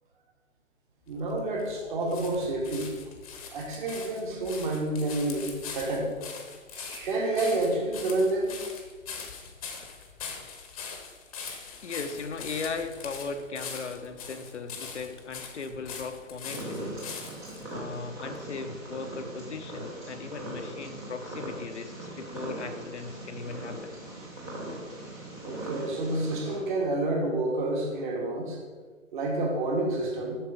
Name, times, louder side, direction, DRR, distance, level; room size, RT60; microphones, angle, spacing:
sound 1, 1.1-17.6 18.3-18.4, left 5 dB, 25° left, 1.0 m, -42 dB
voice 1, 1.1-2.9 3.5-5.5 5.7-6.1 6.7-8.5 25.4-28.6 29.1-30.4, right 2 dB, 40° right, 2.0 m, -29 dB
voice 2, 11.8-17.0 17.7-23.9, left 4 dB, 60° left, 0.8 m, -37 dB
Purr, 16.5-26.6, right 1 dB, 10° right, 0.7 m, -40 dB
7.4 x 6.6 x 5.1 m
figure-of-eight pair, 140°, 40 cm